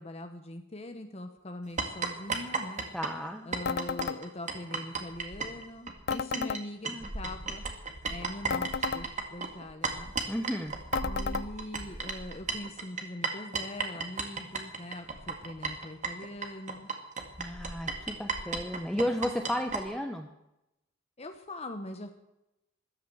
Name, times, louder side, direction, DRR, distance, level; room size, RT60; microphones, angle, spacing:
voice 1, 0.0-2.8 3.4-7.6 8.1-9.1 9.3-10.1 11.0-16.9 21.2-22.1, left 1 dB, 30° left, 6 dB, 1.1 m, -42 dB
sound 1, 1.8-6.6 6.8-19.8, right 4 dB, 40° right, 2.1 m, -34 dB
voice 2, 2.9-3.5 6.3-6.5 6.9-7.1 10.3-10.7 17.4-20.3, equal, 5° left, 4 dB, 0.9 m, -33 dB
sound 2, 3.7-4.2 6.1-6.6 8.5-9.0 10.9-11.5, left 6 dB, 55° left, 0.5 m, -32 dB
14.5 x 12.0 x 7.8 m, 0.89 s
head